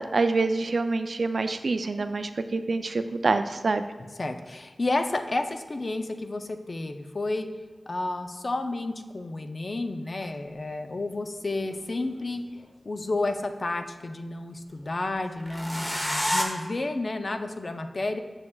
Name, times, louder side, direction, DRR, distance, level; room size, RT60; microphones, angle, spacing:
voice 1, 0.0-3.8, right 3 dB, 75° right, 9 dB, 0.3 m, -26 dB
voice 2, 4.2-7.5 7.9-12.4 12.8-15.9 16.2-18.2, left 2 dB, 55° left, 7 dB, 0.4 m, -31 dB
sound 1, 10.2-10.3 11.6-12.6 15.4-16.4, equal, 20° left, 1.0 m, -29 dB
7.2 x 6.5 x 2.3 m, 1.4 s
wide cardioid pair, 60°, 0 cm